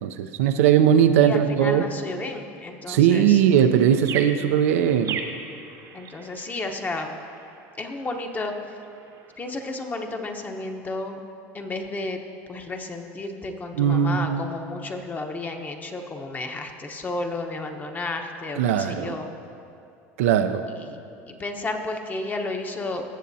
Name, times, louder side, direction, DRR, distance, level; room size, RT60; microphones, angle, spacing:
voice 1, 0.0-1.9 2.9-5.2 13.7-14.4 18.6-19.2 20.2-20.6, right 9 dB, 85° right, 8 dB, 0.5 m, -19 dB
voice 2, 1.2-3.4 5.9-7.1 7.8-8.8 9.4-11.2 11.5-12.2 12.5-19.3 20.7-21.0 21.3-23.0, left 2 dB, 25° left, 4 dB, 1.0 m, -32 dB
sound 1, 3.5-9.8, right 6 dB, 50° right, 0.9 m, -39 dB
16.5 x 7.3 x 2.7 m, 2.6 s
supercardioid pair, 100°, 7 cm